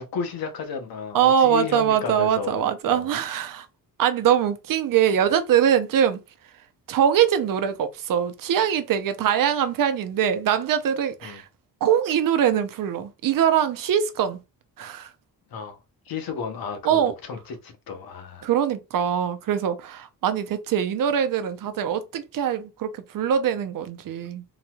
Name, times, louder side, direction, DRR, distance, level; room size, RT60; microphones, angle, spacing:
voice 1, 0.0-3.1 11.2-11.4 15.5-15.8 16.1-18.5, left 6 dB, 75° left, 1.0 m, -33 dB
voice 2, 1.1-3.7 4.0-6.2 6.9-11.5 11.8-14.4 14.8-15.1 16.8-17.1 18.4-24.4, right 9 dB, 65° right, 0.6 m, -22 dB
3.9 x 2.9 x 2.3 m
cardioid pair, 130°, 36 cm